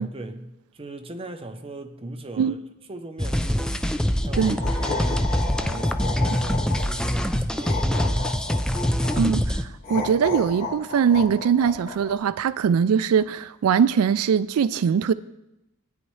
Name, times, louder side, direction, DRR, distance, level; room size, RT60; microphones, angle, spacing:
voice 1, 0.0-2.6 2.9-3.9 4.2-8.6, right 2 dB, 25° right, 0.7 m, -38 dB
sound 1, 3.2-9.6, equal, 5° left, 0.4 m, -24 dB
sound 2, 4.2-7.1 7.6-9.2 9.8-12.1, left 4 dB, 45° left, 1.8 m, -32 dB
voice 2, 9.2-15.1, right 7 dB, 70° right, 0.3 m, -21 dB
16.0 x 9.7 x 3.2 m
head